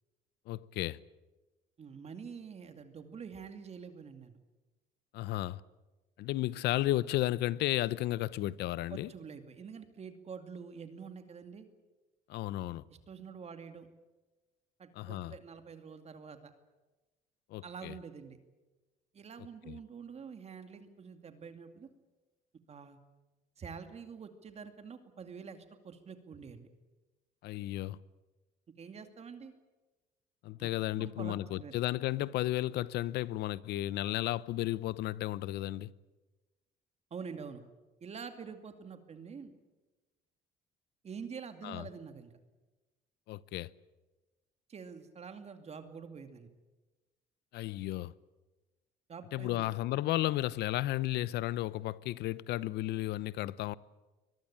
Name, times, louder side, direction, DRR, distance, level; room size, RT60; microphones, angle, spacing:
voice 1, 0.5-1.0 5.1-5.6 6.2-9.1 12.3-12.8 15.0-15.3 17.5-17.9 19.7-19.8 27.4-28.0 30.4-35.9 41.6-41.8 43.3-43.7 47.5-48.1 49.3-53.7, left 15 dB, 80° left, 0.8 m, -33 dB
voice 2, 1.8-4.4 8.9-11.6 12.9-13.9 14.8-16.5 17.6-18.4 19.1-21.9 22.7-23.0 23.6-26.7 28.8-29.5 30.6-30.7 31.0-31.7 37.1-37.6 38.0-39.5 41.0-42.3 44.7-46.5 49.1-49.7, right 6 dB, 40° right, 2.4 m, -46 dB
24.0 x 21.0 x 8.7 m
cardioid pair, 110°, 17 cm